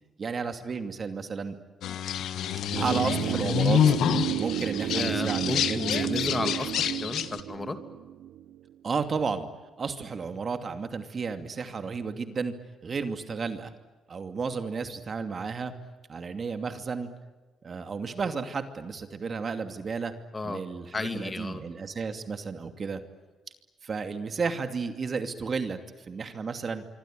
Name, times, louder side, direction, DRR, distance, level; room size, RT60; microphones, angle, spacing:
voice 1, 0.2-1.6 2.8-4.0 4.4-5.8 8.8-9.5 9.8-12.5 12.8-13.7 14.1-15.7 16.1-17.1 17.6-20.1 20.4-23.0 23.8-25.8 26.1-26.9, right 5 dB, 40° right, 7 dB, 2.6 m, -32 dB
sound 1, 1.8-7.4, left 9 dB, 75° left, 1.6 m, -27 dB
sound 2, 2.7-8.7 9.0-9.1, right 11 dB, 80° right, 0.9 m, -32 dB
voice 2, 4.9-7.8 20.3-20.6 20.9-21.6, left 3 dB, 25° left, 8 dB, 2.8 m, -33 dB
26.0 x 24.5 x 9.3 m, 1.2 s
cardioid pair, 90°, 0 cm